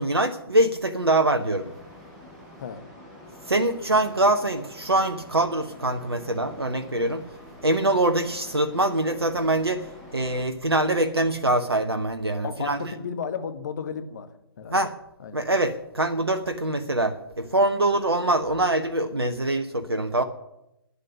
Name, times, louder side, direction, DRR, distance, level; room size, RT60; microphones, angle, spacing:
voice 1, 0.0-1.7 3.5-7.3 7.6-12.9 14.7-14.9 15.3-20.2, right 1 dB, 80° right, 9 dB, 1.1 m, -24 dB
sound 1, 1.4-10.4, left 1 dB, 5° right, 5.7 m, -47 dB
voice 2, 12.4-14.8 15.2-15.4, left 6 dB, 45° left, 9 dB, 1.5 m, -34 dB
12.0 x 9.6 x 10.0 m, 0.86 s
figure-of-eight pair, 130°, 13 cm